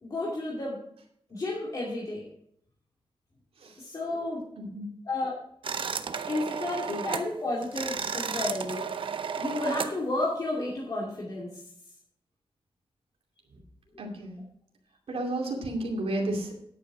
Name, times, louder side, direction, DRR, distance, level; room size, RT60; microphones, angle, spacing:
voice 1, 0.0-0.8 1.3-2.2 3.8-4.4 5.1-5.4 6.3-8.9 9.4-11.6, left 2 dB, 40° left, -5 dB, 2.5 m, -32 dB
voice 2, 4.6-4.9 6.9-7.0 14.0-14.4 15.1-16.6, right 1 dB, 80° right, -1 dB, 2.5 m, -32 dB
sound 1, 5.6-7.3 7.6-10.0, right 6 dB, 60° right, 0.7 m, -33 dB
10.0 x 9.0 x 5.0 m, 0.70 s
wide cardioid pair, 150°, 10 cm